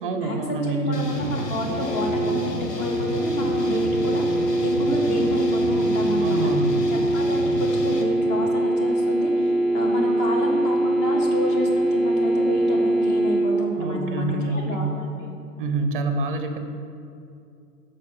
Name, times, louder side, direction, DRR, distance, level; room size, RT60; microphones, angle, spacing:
voice 1, 0.0-1.1 6.2-6.9 13.7-14.9 15.6-16.6, right 3 dB, 35° right, 6 dB, 0.7 m, -26 dB
voice 2, 0.6-6.5 6.9-15.3, left 1 dB, 15° left, 0 dB, 0.7 m, -30 dB
sound 1, 0.9-8.0, left 1 dB, 75° left, 1.3 m, -32 dB
sound 2, 1.1-13.4, right 1 dB, ahead, 1.7 m, -23 dB
sound 3, 3.8-15.8, right 2 dB, 45° left, 1.1 m, -44 dB
7.4 x 5.2 x 5.8 m, 2.5 s
figure-of-eight pair, 120°, 49 cm